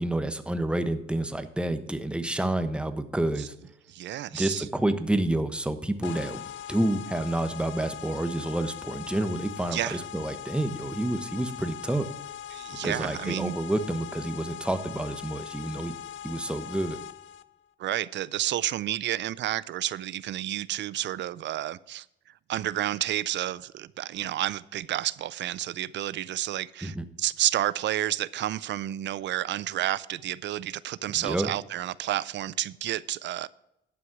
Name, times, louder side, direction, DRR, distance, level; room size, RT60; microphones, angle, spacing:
voice 1, 0.0-3.5 4.3-6.4 6.7-12.1 12.8-15.9 16.2-17.0 26.8-27.0 31.2-31.5, right 1 dB, 5° right, 1.0 m, -29 dB
voice 2, 3.9-4.7 9.7-10.0 12.5-13.6 17.8-22.1 22.5-33.5, right 13 dB, 65° right, 0.4 m, -30 dB
sound 1, 6.0-17.4, left 10 dB, 75° left, 0.5 m, -41 dB
11.5 x 6.2 x 6.0 m
cardioid pair, 90°, 20 cm